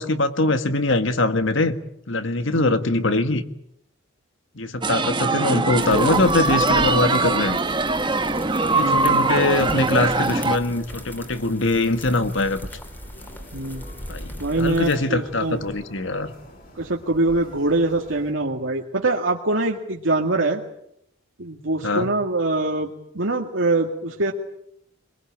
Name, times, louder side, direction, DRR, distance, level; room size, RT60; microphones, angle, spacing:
voice 1, 0.0-1.7 2.1-3.4 4.6-7.6 8.7-12.6 14.1-16.3 21.8-22.1, left 2 dB, 65° left, 10 dB, 1.6 m, -22 dB
voice 2, 2.5-2.8 8.8-9.3 13.5-13.9 14.4-15.6 16.8-20.6 21.4-24.3, right 2 dB, 70° right, 2 dB, 1.9 m, -24 dB
sound 1, 4.8-10.6, right 3 dB, 20° right, 1.3 m, -21 dB
sound 2, 5.8-15.0, equal, 10° left, 2.7 m, -39 dB
sound 3, 10.3-18.3, left 1 dB, 45° left, 6.9 m, -46 dB
23.0 x 21.5 x 8.8 m, 0.76 s
head